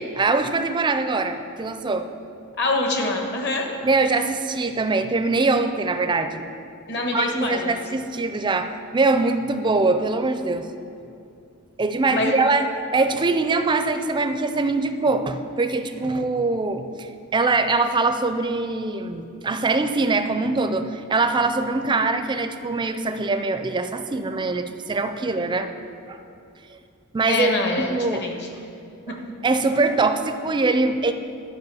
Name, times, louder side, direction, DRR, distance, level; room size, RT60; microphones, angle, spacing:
voice 1, 0.0-2.1 3.8-6.4 7.1-10.7 11.8-25.7 26.1-26.2 27.1-28.3 29.1-29.2 29.4-31.1, right 3 dB, 20° right, 9 dB, 0.4 m, -23 dB
voice 2, 2.6-3.7 6.9-7.8 12.1-12.4 27.3-27.9 28.2-28.4 29.1-29.2, left 2 dB, 50° left, 2 dB, 1.3 m, -25 dB
10.5 x 5.3 x 6.9 m, 2.6 s
head